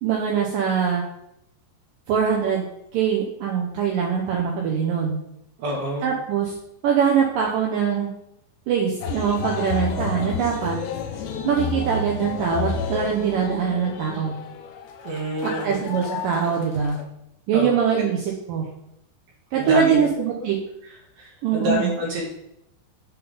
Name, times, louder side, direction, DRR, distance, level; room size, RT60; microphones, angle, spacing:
voice 1, 0.0-1.1 2.1-2.7 2.9-5.2 6.0-6.5 6.8-8.1 8.7-10.8 11.5-14.4 15.4-17.0 17.5-18.7 19.5-20.6 21.4-21.9, right 7 dB, 90° right, -1 dB, 1.9 m, -23 dB
voice 2, 5.6-6.1 15.0-15.8 17.5-17.8 19.6-20.1 20.4-20.5 20.8-22.2, equal, 70° right, -4 dB, 2.8 m, -27 dB
sound 1, 9.0-17.0, left 6 dB, 90° left, 2.9 m, -31 dB
7.3 x 3.9 x 5.3 m, 0.80 s
omnidirectional pair, 4.9 m